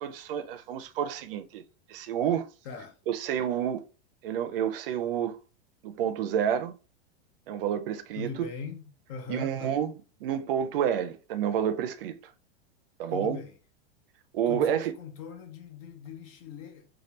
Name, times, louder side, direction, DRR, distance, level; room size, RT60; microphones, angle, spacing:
voice 1, 0.0-1.6 1.9-2.5 3.1-3.8 4.2-5.4 5.8-6.7 7.5-8.5 9.3-9.9 10.2-12.2 13.0-13.4 14.3-14.9, right 9 dB, 65° right, 0.5 m, -29 dB
voice 2, 2.6-3.0 8.2-9.8 13.1-13.6 14.5-16.9, left 6 dB, 35° left, 0.5 m, -40 dB
3.2 x 2.4 x 2.8 m
supercardioid pair, 170°, 31 cm